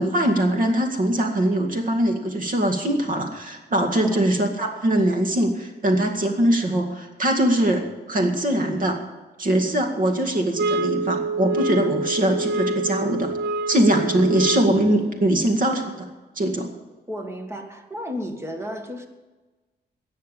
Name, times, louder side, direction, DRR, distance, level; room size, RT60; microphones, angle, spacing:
voice 1, 0.0-9.0 9.4-13.3 13.7-16.1 16.4-16.7, right 1 dB, 50° right, 4 dB, 2.1 m, -22 dB
voice 2, 3.8-4.2 17.1-19.1, left 1 dB, 15° right, 5 dB, 1.7 m, -33 dB
sound 1, 10.6-14.9, right 2 dB, 75° right, 0.6 m, -26 dB
17.5 x 6.6 x 8.2 m, 1.2 s
wide cardioid pair, 145°, 18 cm